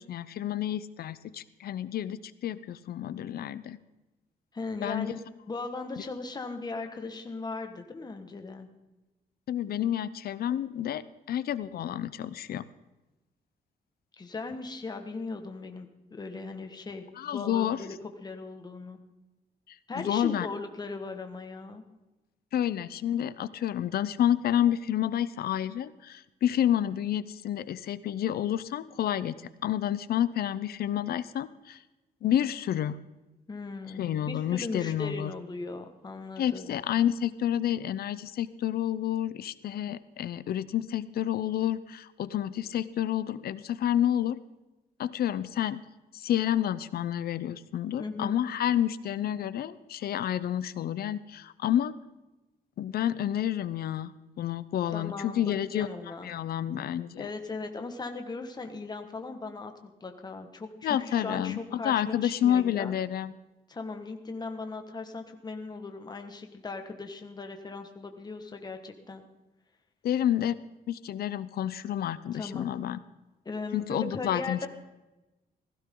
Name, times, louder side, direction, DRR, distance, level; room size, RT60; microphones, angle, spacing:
voice 1, 0.0-3.8 4.8-5.1 9.5-11.0 11.3-12.6 17.2-17.8 20.0-20.5 22.5-31.8 32.2-33.0 34.0-35.3 36.4-44.4 45.0-45.8 46.1-51.9 52.8-54.1 54.4-55.9 56.2-57.3 60.8-61.6 61.8-63.3 70.0-70.5 70.9-73.0 73.7-74.7, left 11 dB, 70° left, 16 dB, 0.7 m, -29 dB
voice 2, 4.5-5.2 5.5-8.7 14.2-17.1 17.3-19.0 19.9-21.8 33.5-36.8 48.0-48.4 54.9-56.3 57.2-62.9 63.7-69.2 72.3-72.7 73.4-74.7, left 3 dB, 25° left, 5 dB, 1.6 m, -38 dB
16.5 x 15.0 x 3.9 m, 1.1 s
cardioid pair, 130°, 17 cm